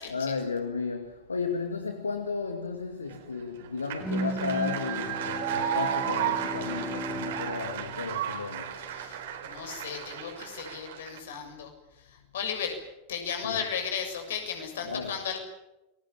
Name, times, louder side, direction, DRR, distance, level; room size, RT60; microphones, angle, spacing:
voice 1, 0.1-9.0 13.4-13.6 14.8-15.2, left 5 dB, 75° left, 2.2 m, -34 dB
sound 1, 3.1-11.2, right 10 dB, 55° right, 4.3 m, -34 dB
Bowed string instrument, 4.0-9.1, right 1 dB, 5° right, 1.4 m, -36 dB
voice 2, 9.0-11.7 12.1-12.8 13.1-15.4, left 7 dB, 60° left, 6.9 m, -35 dB
29.0 x 21.5 x 7.4 m
figure-of-eight pair, 90°, 0 cm